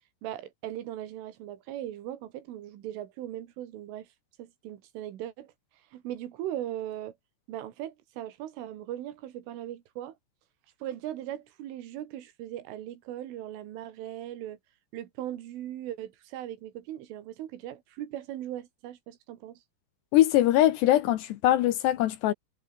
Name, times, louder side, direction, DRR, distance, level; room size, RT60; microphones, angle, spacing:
voice 1, 0.2-4.1 4.4-5.5 5.9-7.2 7.5-10.2 10.8-14.6 14.9-19.6, right 12 dB, 80° right, 4.4 m, -39 dB
voice 2, 20.1-22.3, left 13 dB, 75° left, 2.9 m, -22 dB
omnidirectional pair, 5.7 m